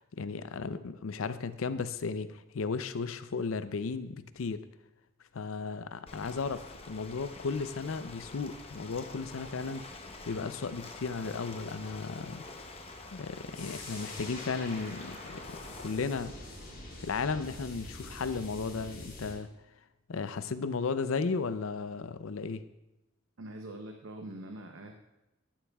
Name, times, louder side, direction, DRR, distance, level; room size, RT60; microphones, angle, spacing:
voice 1, 0.0-4.6 5.3-9.9 10.2-12.4 13.1-16.3 17.0-19.5 20.1-22.6, left 4 dB, 80° left, 12 dB, 0.5 m, -35 dB
Ocean, 6.1-15.9, left 2 dB, 30° left, 0.7 m, -47 dB
sound 1, 13.5-19.3, left 2 dB, 50° left, 3.8 m, -45 dB
voice 2, 23.4-24.9, right 1 dB, 75° right, 3 dB, 0.7 m, -43 dB
12.5 x 12.0 x 2.3 m, 0.95 s
head